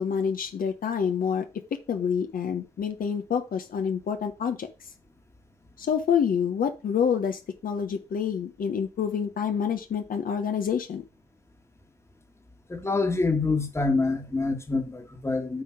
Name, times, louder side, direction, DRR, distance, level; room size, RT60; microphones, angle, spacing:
voice 1, 0.0-1.5 1.9-4.7 5.8-11.0, left 7 dB, 60° left, 1.0 m, -27 dB
voice 2, 12.7-15.6, left 3 dB, 15° left, 1.6 m, -26 dB
8.3 x 3.8 x 5.8 m
cardioid pair, 95°, 16 cm